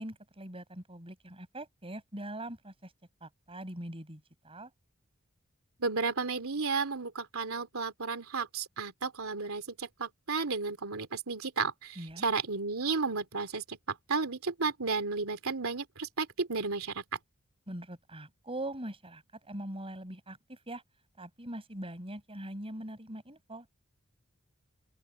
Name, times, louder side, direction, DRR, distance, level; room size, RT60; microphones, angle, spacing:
voice 1, 0.0-2.9 3.2-4.7 12.0-12.3 17.7-20.8 21.2-23.7, right 1 dB, 25° right, 6.3 m, -42 dB
voice 2, 5.8-17.0, right 4 dB, 80° right, 2.8 m, -33 dB
open air
head